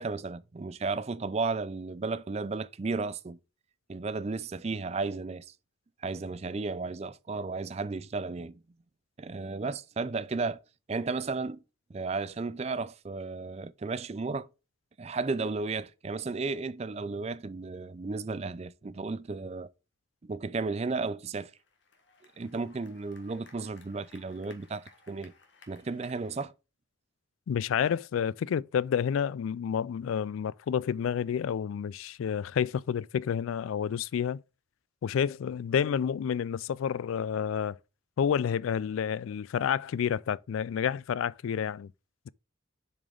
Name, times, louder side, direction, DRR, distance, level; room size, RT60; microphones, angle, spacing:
voice 1, 0.0-3.4 3.9-5.5 6.0-8.6 9.2-10.6 10.9-11.6 11.9-14.5 15.0-19.7 20.2-21.5 22.4-25.3 25.7-26.5, right 3 dB, 30° right, 0.4 m, -34 dB
sound 1, 21.5-26.4, left 4 dB, 65° left, 1.6 m, -59 dB
voice 2, 27.5-34.4 35.0-37.8 38.2-41.9, left 8 dB, 85° left, 0.3 m, -29 dB
7.1 x 5.1 x 3.8 m
head